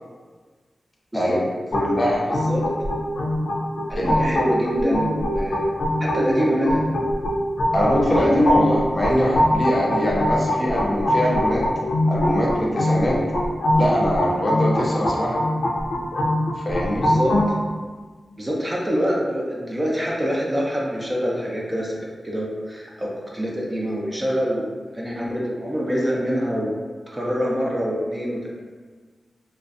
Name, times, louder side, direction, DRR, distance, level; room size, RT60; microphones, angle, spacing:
sound 1, 1.7-17.5, left 1 dB, 85° left, 0.5 m, -23 dB
voice 1, 1.7-2.3 4.0-4.1 4.7-4.8 7.7-11.6 12.1-13.2 13.8-15.4 16.6-17.1, left 1 dB, 35° left, -4 dB, 0.6 m, -22 dB
voice 2, 2.3-2.7 3.9-5.7 6.0-6.8 17.0-17.3 18.4-26.8 27.1-28.5, equal, 20° right, -4 dB, 0.5 m, -25 dB
2.4 x 2.0 x 2.5 m, 1.4 s
cardioid pair, 50°, 0 cm